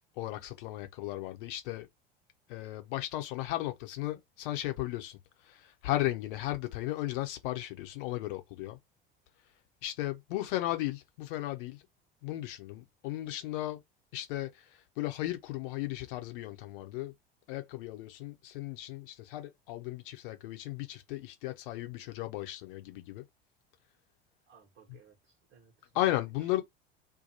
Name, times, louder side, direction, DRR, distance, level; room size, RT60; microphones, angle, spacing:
voice 1, 0.2-1.9 2.5-5.2 5.5-8.8 9.8-11.8 12.2-13.8 14.1-14.5 15.0-17.1 17.5-23.2 25.9-26.6, left 15 dB, 60° left, 0.8 m, -35 dB
voice 2, 24.5-26.6, right 6 dB, 40° right, 1.0 m, -60 dB
2.7 x 2.2 x 2.8 m
figure-of-eight pair, 70°, 30 cm